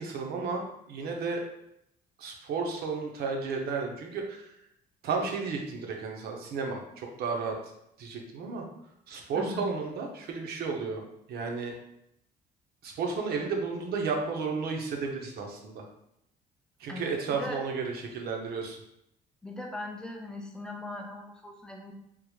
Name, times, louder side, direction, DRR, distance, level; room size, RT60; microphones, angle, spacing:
voice 1, 0.0-1.4 2.2-4.5 5.0-7.6 8.0-8.6 9.1-11.0 11.3-11.8 12.8-15.8 16.8-18.8, right 4 dB, 70° right, 2 dB, 0.7 m, -33 dB
voice 2, 9.3-9.7 16.9-17.6 19.4-21.9, left 2 dB, 5° left, 0 dB, 0.4 m, -39 dB
3.5 x 2.1 x 3.0 m, 0.77 s
cardioid pair, 110°, 17 cm